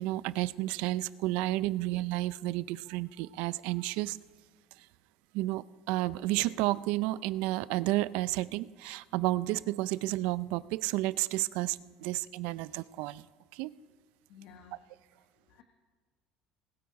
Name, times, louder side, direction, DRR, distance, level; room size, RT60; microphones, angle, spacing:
voice 1, 0.0-4.2 4.8-4.9 5.3-13.3 13.5-13.7, right 17 dB, 75° right, 19 dB, 0.4 m, -31 dB
voice 2, 14.3-14.8 15.2-15.6, left 6 dB, 65° left, 5 dB, 1.1 m, -55 dB
20.0 x 8.6 x 4.7 m, 1.5 s
cardioid pair, 145°, 2 cm